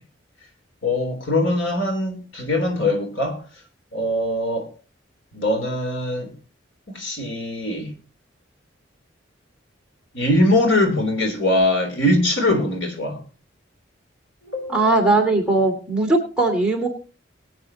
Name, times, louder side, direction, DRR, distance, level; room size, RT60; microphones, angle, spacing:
voice 1, 0.8-3.4 3.9-4.7 5.3-6.3 6.9-7.9 10.1-13.2 14.5-14.9, left 1 dB, 75° left, 4 dB, 3.4 m, -22 dB
voice 2, 14.7-16.9, right 2 dB, 5° right, -1 dB, 2.5 m, -19 dB
21.5 x 8.6 x 2.9 m, 0.34 s
head